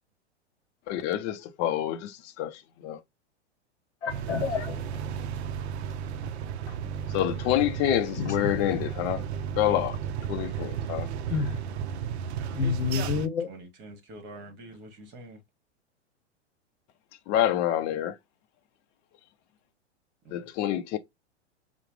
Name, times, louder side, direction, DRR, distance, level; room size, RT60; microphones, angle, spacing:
voice 1, 0.9-3.0 7.1-10.0 10.3-11.1 17.3-18.2 20.3-21.0, left 12 dB, 30° left, 0.5 m, -27 dB
voice 2, 4.0-5.3 6.7-6.8 8.2-8.8 11.3-11.6 12.5-13.5, left 6 dB, 70° left, 0.8 m, -30 dB
sound 1, 4.1-13.3, right 8 dB, 70° right, 0.5 m, -34 dB
voice 3, 13.5-15.4 20.2-20.5, right 2 dB, 30° right, 1.2 m, -46 dB
4.7 x 2.1 x 3.0 m
hypercardioid pair, 110°, 34 cm